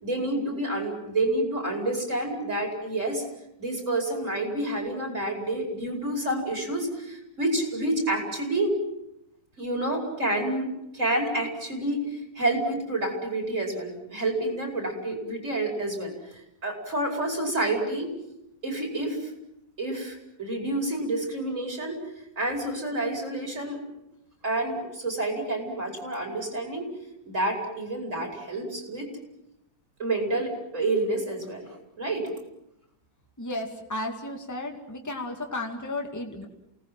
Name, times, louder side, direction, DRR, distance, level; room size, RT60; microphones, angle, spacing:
voice 1, 0.0-3.2 3.6-8.7 9.6-16.1 16.6-18.1 18.6-19.3 19.8-22.0 22.4-23.8 24.4-26.9 27.3-29.1 30.0-32.3, right 2 dB, 40° right, 2 dB, 5.7 m, -29 dB
voice 2, 33.4-36.5, left 2 dB, 10° left, 3 dB, 2.2 m, -33 dB
29.0 x 19.0 x 7.7 m, 0.84 s
omnidirectional pair, 2.0 m